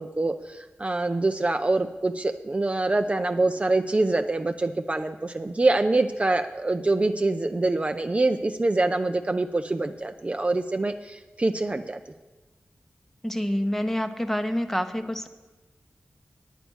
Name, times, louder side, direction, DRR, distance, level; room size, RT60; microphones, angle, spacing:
voice 1, 0.0-12.0, right 2 dB, 30° right, 7 dB, 0.5 m, -25 dB
voice 2, 13.2-15.3, equal, 5° left, 8 dB, 0.9 m, -27 dB
9.4 x 9.1 x 6.3 m, 1.2 s
wide cardioid pair, 70°, 4 cm